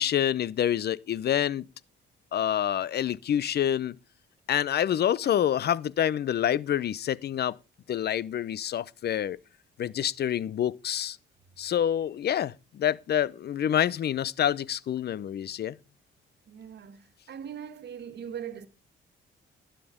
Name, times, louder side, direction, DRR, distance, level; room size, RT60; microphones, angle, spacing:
voice 1, 0.0-1.6 2.3-3.9 4.5-7.5 7.9-9.4 9.8-11.2 11.6-15.7, left 10 dB, 55° left, 0.7 m, -27 dB
voice 2, 16.5-18.7, right 8 dB, 60° right, 1.7 m, -40 dB
12.5 x 10.0 x 5.1 m
cardioid pair, 90°, 20 cm